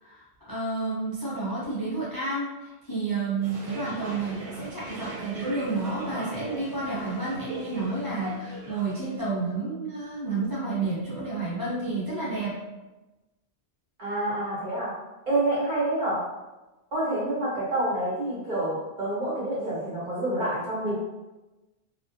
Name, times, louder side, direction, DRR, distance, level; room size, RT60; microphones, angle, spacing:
voice 1, 0.0-12.6, right 3 dB, 35° left, -8 dB, 0.4 m, -30 dB
sound 1, 3.4-9.1, right 3 dB, 85° right, 0.9 m, -39 dB
voice 2, 14.0-14.9 15.3-16.2 16.9-20.9, right 1 dB, 50° right, -8 dB, 1.1 m, -27 dB
2.3 x 2.1 x 2.6 m, 1.1 s
omnidirectional pair, 1.1 m